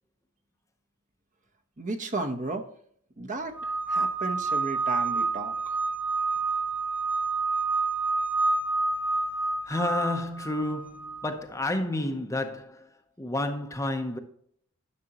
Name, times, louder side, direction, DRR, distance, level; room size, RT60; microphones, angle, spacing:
voice 1, 1.8-2.7 3.2-5.8, right 2 dB, 35° right, 0.9 m, -34 dB
sound 1, 3.6-11.3, right 3 dB, 5° right, 0.3 m, -28 dB
voice 2, 9.7-12.9 13.2-14.2, left 1 dB, 15° left, 0.7 m, -30 dB
11.0 x 6.5 x 2.9 m
head